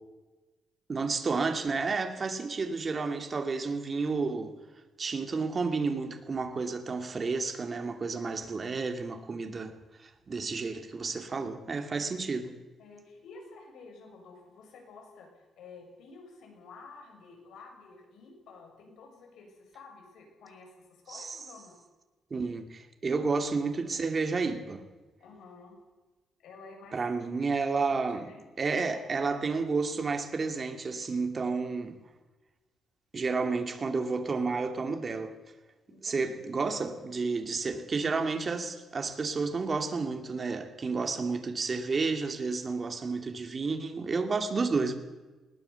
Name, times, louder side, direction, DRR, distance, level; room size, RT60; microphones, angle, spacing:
voice 1, 0.9-4.5 5.0-9.7 10.0-12.6 21.1-21.4 22.3-24.9 26.9-28.3 28.6-32.0 33.1-35.3 36.0-44.9, right 4 dB, 30° right, 2.4 m, -31 dB
voice 2, 12.8-21.7 23.2-23.3 25.2-25.8 26.4-27.0 27.8-28.5 28.9-29.0 35.9-36.5, left 4 dB, 80° left, 7.1 m, -51 dB
20.5 x 19.0 x 7.1 m
cardioid pair, 140°, 0 cm